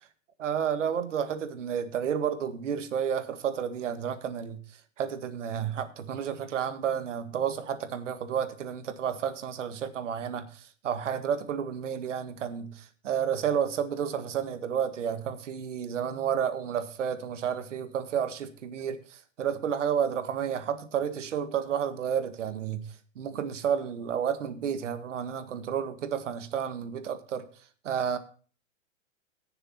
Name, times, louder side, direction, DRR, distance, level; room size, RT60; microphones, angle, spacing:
voice 1, 0.4-4.6 5.0-22.8 23.2-27.5 27.8-28.2, right 8 dB, 70° right, 1.7 m, -31 dB
17.5 x 6.9 x 4.3 m
hypercardioid pair, 160°, 38 cm